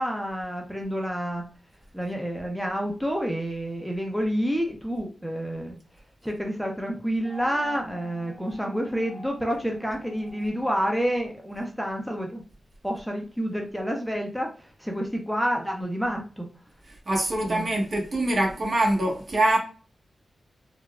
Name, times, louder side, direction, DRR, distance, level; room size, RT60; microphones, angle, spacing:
voice 1, 0.0-1.4 1.9-5.8 6.2-12.4 12.8-16.5 17.5-17.7, equal, ahead, 0.5 m, -29 dB
sound 1, 7.2-11.8, equal, 25° right, 1.3 m, -45 dB
voice 2, 17.1-19.6, right 1 dB, 55° right, 1.1 m, -24 dB
3.8 x 2.2 x 2.2 m
wide cardioid pair, 90°, 0 cm